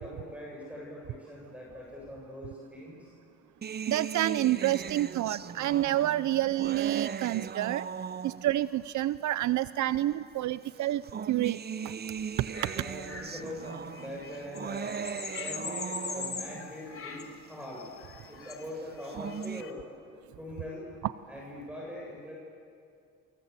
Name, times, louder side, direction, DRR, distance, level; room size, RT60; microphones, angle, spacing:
voice 1, 0.0-3.1 12.7-14.9 15.4-17.9 18.3-19.8 20.4-20.9 21.3-22.3, left 1 dB, 5° right, -3 dB, 7.2 m, -42 dB
sound 1, 3.6-8.7 9.6-9.7 10.8-16.7 18.8-19.6, right 7 dB, 35° right, 0.7 m, -38 dB
voice 2, 3.9-7.9 8.2-11.6 21.0-21.1, right 14 dB, 75° right, 15 dB, 0.6 m, -28 dB
sound 2, 12.3-19.7, left 6 dB, 45° left, 3.0 m, -42 dB
29.0 x 24.0 x 8.3 m, 2.3 s
cardioid pair, 90°, 30 cm